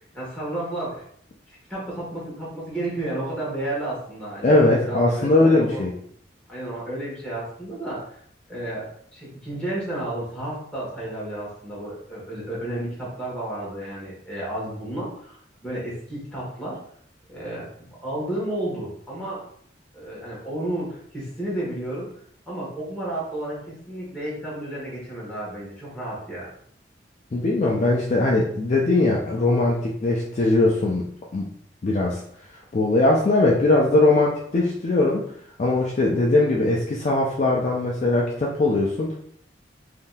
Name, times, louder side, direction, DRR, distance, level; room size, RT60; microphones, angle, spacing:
voice 1, 0.1-1.0 1.7-5.8 6.5-8.2 8.5-16.8 17.3-19.4 19.9-22.1 22.5-26.5, right 1 dB, 5° left, -7 dB, 1.2 m, -32 dB
voice 2, 4.4-5.9 27.3-31.1 31.3-31.5 31.8-32.2 32.7-35.3 35.6-39.1, left 2 dB, 40° left, -2 dB, 0.4 m, -20 dB
3.6 x 2.6 x 2.2 m, 0.64 s
head